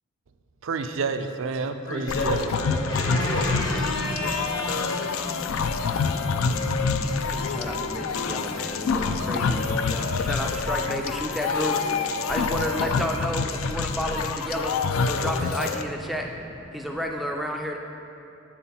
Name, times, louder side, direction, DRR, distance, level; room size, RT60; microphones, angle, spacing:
voice 1, 0.6-2.6, right 4 dB, 70° right, 8 dB, 0.4 m, -29 dB
voice 2, 1.9-5.1, left 1 dB, 70° left, 0 dB, 1.2 m, -31 dB
sound 1, 2.1-15.8, left 5 dB, 90° left, 0.4 m, -27 dB
Race car auto racing, 3.0-17.1, equal, 45° left, 1.0 m, -39 dB
voice 3, 7.5-11.8 12.3-14.7 15.1-16.3 16.7-17.8, equal, ahead, 1 dB, 0.3 m, -31 dB
7.1 x 5.8 x 4.2 m, 3.0 s
head